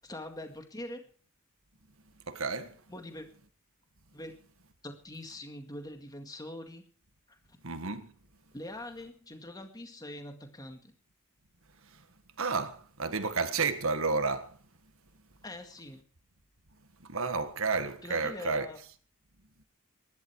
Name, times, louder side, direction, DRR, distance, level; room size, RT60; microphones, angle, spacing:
voice 1, 0.0-1.0 2.9-3.3 4.1-4.3 4.8-6.8 7.3-7.6 8.5-10.9 15.4-16.0 18.0-18.8, left 1 dB, 20° left, 2.1 m, -43 dB
voice 2, 2.3-2.7 7.6-8.1 12.4-14.5 17.1-18.7, right 4 dB, 65° right, 1.7 m, -31 dB
22.0 x 11.5 x 4.7 m
head